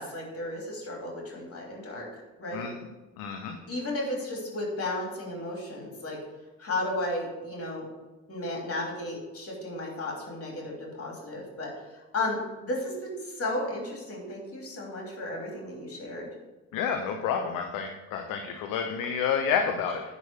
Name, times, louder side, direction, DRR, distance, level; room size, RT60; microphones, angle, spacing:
voice 1, 0.0-2.7 3.7-6.2 6.6-7.8 8.3-16.3, left 1 dB, 35° left, -1 dB, 3.1 m, -34 dB
voice 2, 3.2-3.5 16.7-20.0, left 7 dB, 55° left, 5 dB, 0.9 m, -29 dB
10.5 x 4.0 x 7.2 m, 1.1 s
figure-of-eight pair, 45°, 39 cm